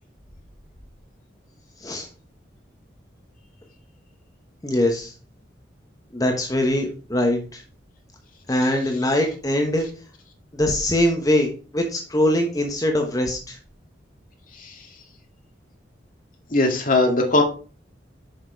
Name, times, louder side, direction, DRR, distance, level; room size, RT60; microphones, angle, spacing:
voice 1, 4.6-5.1 6.1-7.6 8.5-9.9 10.5-13.6, left 1 dB, 20° left, 2 dB, 1.1 m, -22 dB
voice 2, 14.5-14.9 16.5-17.4, left 2 dB, 45° left, 2 dB, 2.0 m, -20 dB
6.5 x 5.9 x 4.6 m, 0.37 s
head